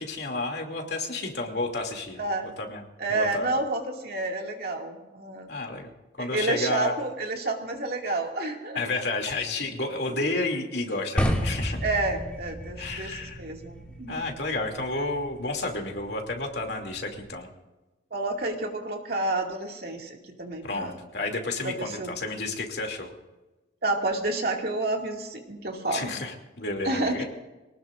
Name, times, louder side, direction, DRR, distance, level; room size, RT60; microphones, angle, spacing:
voice 1, 0.0-2.2 2.6-2.8 3.1-3.5 5.5-5.9 6.2-7.0 8.7-11.8 12.8-13.4 14.1-17.5 20.6-23.1 25.9-27.2, left 2 dB, 60° left, 2 dB, 2.8 m, -31 dB
voice 2, 2.2-2.5 3.0-5.5 6.2-8.8 11.8-14.3 18.1-21.0 21.6-22.2 23.8-26.1 26.8-27.2, right 2 dB, 55° right, 1 dB, 2.4 m, -29 dB
sound 1, 11.2-17.3, equal, 5° left, 2.2 m, -33 dB
23.5 x 19.0 x 2.6 m, 1.1 s
head